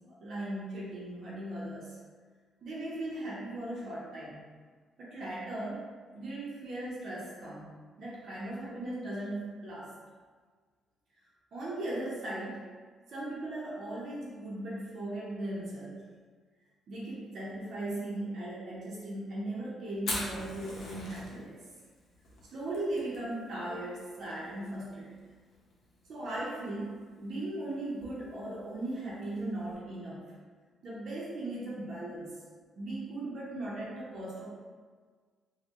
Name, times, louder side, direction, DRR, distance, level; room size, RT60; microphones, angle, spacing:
voice 1, 0.1-1.9 2.6-4.4 5.0-5.9 6.1-7.7 8.0-9.9 11.5-12.7 13.1-16.0 16.9-21.6 22.5-25.1 26.1-30.2 30.8-32.4 32.8-34.5, right 1 dB, 60° right, -6 dB, 0.6 m, -38 dB
Fire, 20.0-29.7, left 2 dB, 70° left, 0.6 m, -44 dB
2.1 x 2.1 x 2.8 m, 1.5 s
cardioid pair, 90°, 0 cm